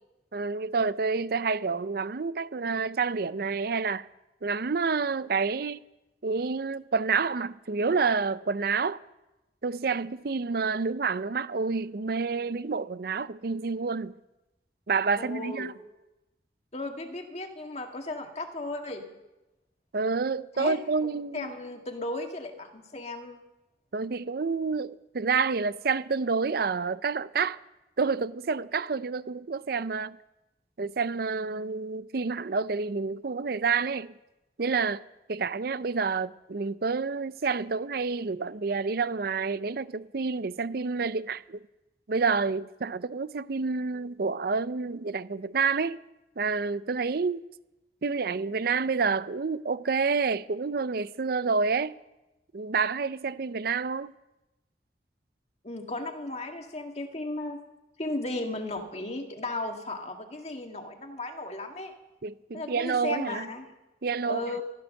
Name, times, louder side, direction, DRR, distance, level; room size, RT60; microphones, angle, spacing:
voice 1, 0.3-4.1 4.4-5.8 6.2-9.0 9.6-14.2 14.9-15.7 19.9-21.5 23.9-27.6 28.0-30.2 30.8-34.1 34.6-41.6 42.1-46.0 46.4-47.4 48.0-52.0 52.5-54.1 62.2-63.5 64.0-64.4, right 4 dB, 55° right, 0.5 m, -28 dB
voice 2, 15.2-15.7 16.7-19.0 20.5-23.4 55.6-57.6 58.0-61.9 62.5-63.7 64.2-64.6, left 2 dB, 35° left, 1.9 m, -35 dB
15.5 x 13.5 x 6.5 m
head